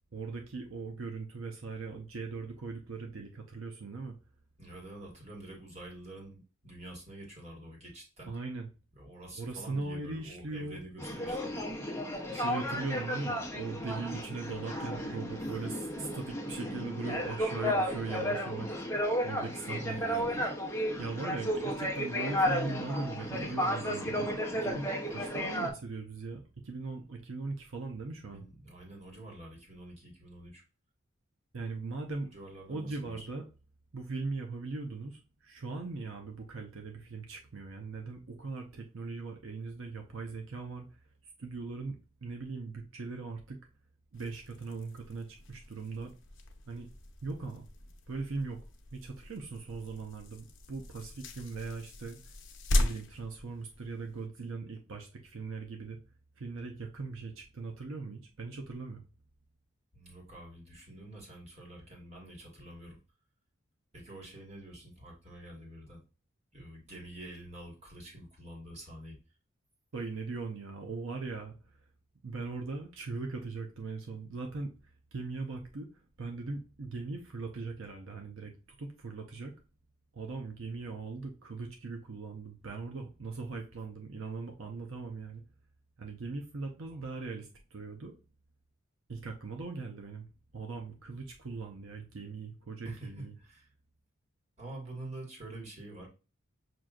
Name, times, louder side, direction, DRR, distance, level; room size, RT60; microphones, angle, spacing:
voice 1, 0.1-4.2 8.3-8.7 9.4-10.8 12.3-18.8 19.2-20.0 21.0-28.4 31.5-32.3 32.7-33.4 33.9-40.8 41.4-43.6 44.1-46.1 46.7-46.9 47.2-47.7 48.1-48.6 48.9-52.4 52.8-56.0 56.4-59.0 69.9-71.5 72.2-74.7 75.1-75.9 76.2-78.5 78.8-79.5 80.1-85.4 86.0-88.1 89.1-90.3 90.5-93.4, right 3 dB, 75° right, 3 dB, 0.7 m, -39 dB
voice 2, 4.6-8.3 8.9-11.6 19.9-20.4 28.2-30.6 32.3-33.3 59.9-63.0 63.9-66.0 66.5-69.2 86.9-87.0 92.8-93.7 94.6-96.1, right 1 dB, 30° right, -1 dB, 1.5 m, -47 dB
sound 1, 11.0-25.7, equal, 10° left, 0.6 m, -33 dB
sound 2, 44.1-54.3, left 1 dB, 65° left, 0.7 m, -38 dB
6.0 x 2.6 x 2.4 m, 0.31 s
head